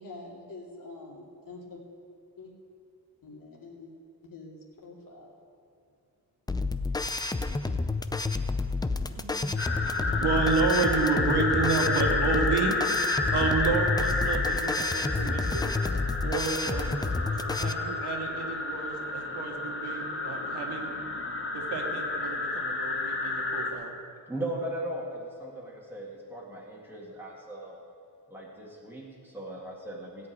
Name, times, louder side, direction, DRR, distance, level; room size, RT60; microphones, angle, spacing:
voice 1, 0.0-1.8 2.4-2.5 3.2-3.9 4.2-5.3 6.8-7.1, left 3 dB, 55° left, -1 dB, 2.5 m, -46 dB
sound 1, 6.5-17.7, left 3 dB, 10° left, 0.4 m, -30 dB
voice 2, 9.2-9.5 9.8-12.8 13.3-15.7 16.2-17.0 17.3-20.9 21.5-24.0, right 4 dB, 90° right, 1 dB, 2.0 m, -30 dB
sound 2, 9.6-23.7, left 3 dB, 30° left, 1.2 m, -30 dB
voice 3, 24.3-27.8 28.3-30.3, right 1 dB, 5° right, -3 dB, 2.0 m, -38 dB
16.5 x 5.5 x 9.3 m, 2.3 s
wide cardioid pair, 150°, 39 cm